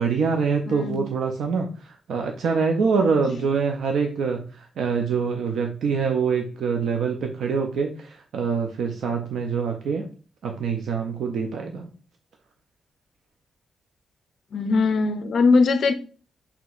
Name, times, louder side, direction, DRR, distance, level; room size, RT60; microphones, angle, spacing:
voice 1, 0.0-10.1 10.4-11.9, right 5 dB, 80° right, 0.4 m, -25 dB
voice 2, 0.7-1.0 3.3-3.4 14.5-15.9, left 4 dB, 55° left, 0.4 m, -20 dB
5.9 x 2.8 x 2.4 m
wide cardioid pair, 160°, 0 cm